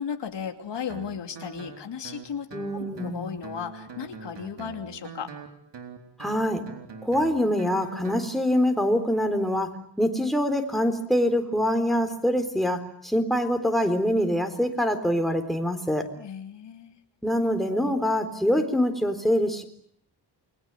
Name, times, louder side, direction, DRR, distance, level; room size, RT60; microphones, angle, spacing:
voice 1, 0.0-2.5 2.8-5.3 16.2-17.0, left 7 dB, 85° left, 6 dB, 2.9 m, -35 dB
Guitar, 0.9-8.3, right 6 dB, 90° right, 4.1 m, -43 dB
voice 2, 2.5-3.4 6.2-6.6 7.0-16.1 17.2-19.6, equal, ahead, 5 dB, 3.9 m, -25 dB
29.0 x 22.5 x 9.1 m, 0.66 s
wide cardioid pair, 115°, 41 cm